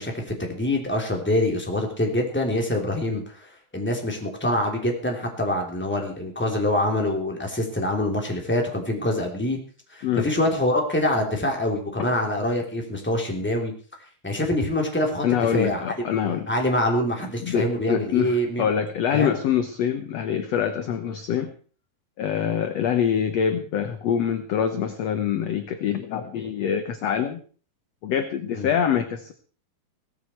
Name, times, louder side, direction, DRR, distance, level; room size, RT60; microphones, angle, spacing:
voice 1, 0.0-9.6 9.9-13.7 14.2-15.2 15.5-16.1 16.5-18.7 19.1-19.3 28.5-28.7, left 1 dB, 5° left, 1 dB, 2.9 m, -25 dB
voice 2, 15.2-16.5 17.4-21.5 22.2-27.4 28.0-29.3, left 8 dB, 65° left, 8 dB, 1.7 m, -25 dB
17.0 x 15.0 x 4.6 m, 0.40 s
omnidirectional pair, 4.3 m